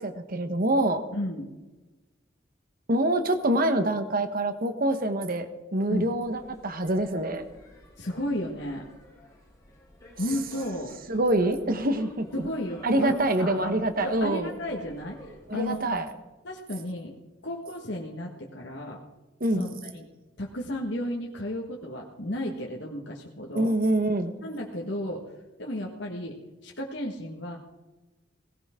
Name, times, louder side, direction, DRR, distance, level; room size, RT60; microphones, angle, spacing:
voice 1, 0.0-1.0 2.9-7.4 11.1-12.5 12.8-14.5 15.5-16.1 19.4-19.7 23.5-24.3, right 1 dB, 50° right, 8 dB, 1.2 m, -25 dB
voice 2, 1.1-1.5 5.9-6.1 8.0-8.9 10.1-11.0 12.3-13.7 14.0-15.2 15.5-15.8 16.4-17.1 17.4-19.0 19.5-20.0 20.4-23.7 24.4-25.3 25.6-27.6, left 1 dB, 65° left, -1 dB, 1.7 m, -33 dB
sound 1, 6.2-16.0, left 1 dB, 20° left, 6.6 m, -51 dB
18.5 x 17.0 x 3.8 m, 1.1 s
head